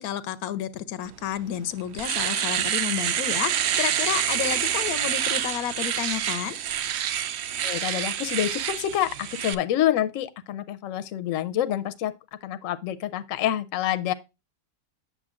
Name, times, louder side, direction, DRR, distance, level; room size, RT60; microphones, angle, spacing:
voice 1, 0.0-6.6, left 10 dB, 90° left, 1.1 m, -31 dB
Domestic sounds home sounds, 1.3-1.4 1.8-9.5, right 10 dB, 65° right, 0.7 m, -27 dB
voice 2, 7.6-12.1 12.4-14.1, left 12 dB, 70° left, 1.0 m, -27 dB
8.1 x 6.8 x 2.4 m
omnidirectional pair, 1.5 m